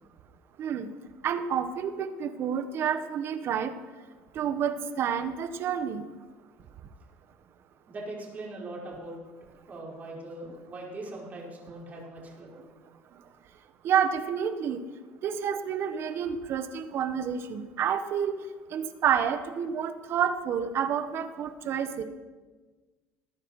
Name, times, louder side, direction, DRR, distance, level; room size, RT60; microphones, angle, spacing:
voice 1, 1.2-3.7 4.3-6.0 13.8-14.8 15.2-18.4 18.7-22.0, right 8 dB, 55° right, 10 dB, 1.3 m, -29 dB
voice 2, 7.9-9.2 9.7-12.6, right 2 dB, 35° right, -4 dB, 5.2 m, -41 dB
20.0 x 9.7 x 4.9 m, 1.3 s
supercardioid pair, 110°, 5 cm